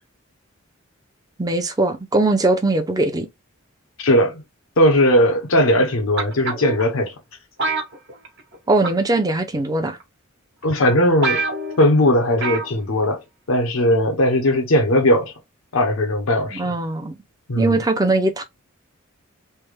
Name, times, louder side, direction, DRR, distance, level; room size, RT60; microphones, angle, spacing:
voice 1, 1.4-3.3 8.7-10.0 16.5-17.1 17.5-18.4, right 2 dB, 20° right, 0.6 m, -20 dB
voice 2, 4.0-4.4 4.8-7.1 10.6-11.4 11.8-15.3 15.7-16.7 17.5-17.8, left 1 dB, 75° left, 0.7 m, -18 dB
sound 1, 6.2-6.8 7.6-8.6 8.8-9.1 10.0-10.1 10.6-10.7 10.9-11.0 11.2-11.9 12.4-12.7 13.0-13.1, right 3 dB, 60° right, 1.1 m, -25 dB
3.3 x 2.2 x 3.2 m
head